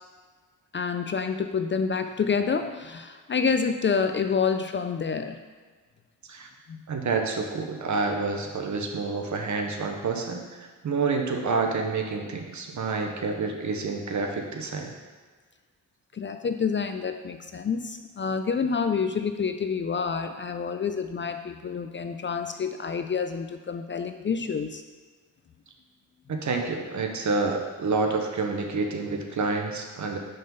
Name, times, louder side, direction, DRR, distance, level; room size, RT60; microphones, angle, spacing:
voice 1, 0.7-5.4 6.7-6.8 16.1-24.8, left 5 dB, 35° left, 7 dB, 0.4 m, -28 dB
voice 2, 6.9-14.9 26.3-30.2, right 4 dB, 55° right, 3 dB, 0.9 m, -28 dB
5.3 x 3.8 x 5.3 m, 1.5 s
cardioid pair, 65°, 35 cm